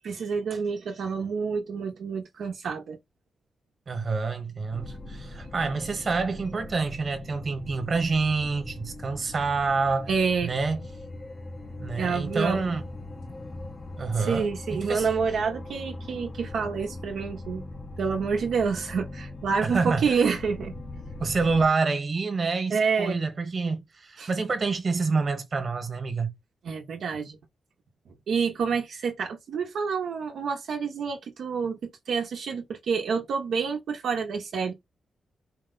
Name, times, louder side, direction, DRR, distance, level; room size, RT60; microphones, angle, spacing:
voice 1, 0.0-3.0 10.1-10.5 12.0-12.6 14.1-17.6 18.0-20.8 22.7-23.2 24.2-24.3 26.6-27.4 28.3-31.8 32.1-34.7, right 5 dB, 75° right, 0.8 m, -28 dB
voice 2, 3.9-10.1 10.4-10.8 11.8-12.8 14.0-15.1 19.6-20.2 21.2-26.3, right 4 dB, 40° right, 1.2 m, -27 dB
sound 1, 4.7-21.7, left 2 dB, 25° left, 0.5 m, -40 dB
4.5 x 2.1 x 3.8 m
wide cardioid pair, 150°, 0 cm